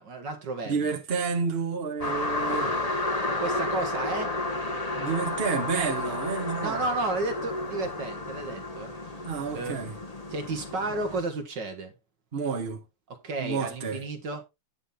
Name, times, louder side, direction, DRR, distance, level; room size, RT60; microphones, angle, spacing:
voice 1, 0.0-1.0 3.4-4.3 6.6-8.9 9.5-9.8 10.3-11.9 13.2-14.4, right 2 dB, 55° right, 1.9 m, -32 dB
voice 2, 0.7-2.7 5.0-6.8 9.2-10.0 12.3-12.8 13.4-14.0, right 5 dB, 30° right, 1.6 m, -30 dB
sound 1, 2.0-11.2, left 2 dB, 20° left, 1.3 m, -31 dB
9.9 x 6.2 x 3.7 m
omnidirectional pair, 2.4 m